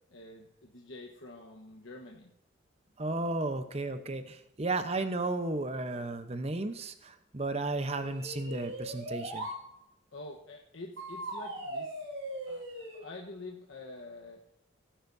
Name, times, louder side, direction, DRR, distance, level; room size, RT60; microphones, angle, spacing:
voice 1, 0.1-2.3 10.1-12.0 12.5-14.4, left 2 dB, 75° left, 0 dB, 1.2 m, -47 dB
voice 2, 3.0-9.5, right 2 dB, 30° right, 9 dB, 0.8 m, -34 dB
sound 1, 7.8-9.6 11.0-13.0, right 1 dB, 85° right, 4.2 m, -39 dB
18.0 x 10.0 x 2.7 m, 0.82 s
head